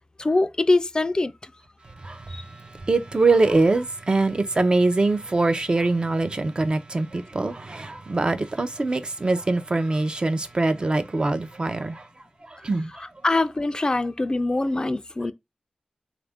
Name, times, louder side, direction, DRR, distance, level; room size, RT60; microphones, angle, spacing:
voice 1, 0.2-1.5 2.3-2.4 13.0-15.3, left 2 dB, 30° left, 0.4 m, -23 dB
voice 2, 2.8-12.0 12.6-12.9, right 2 dB, 40° right, 0.5 m, -23 dB
3.6 x 2.5 x 3.3 m
wide cardioid pair, 85°, 2 cm